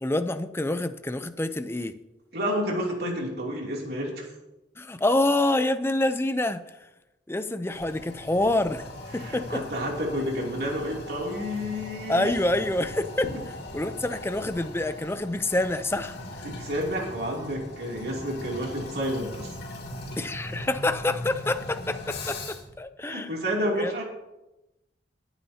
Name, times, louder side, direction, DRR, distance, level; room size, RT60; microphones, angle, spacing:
voice 1, 0.0-1.9 4.8-6.6 7.3-8.9 9.1-9.6 12.1-13.3 13.7-16.2 20.2-23.3 23.8-24.0, left 2 dB, 15° left, 10 dB, 0.5 m, -27 dB
voice 2, 2.3-4.3 9.1-12.3 16.4-19.5 23.1-24.0, equal, 60° right, -1 dB, 2.9 m, -30 dB
Toilet flush, 7.7-22.8, left 1 dB, 60° left, 2.4 m, -39 dB
22.5 x 9.0 x 2.8 m, 0.98 s
head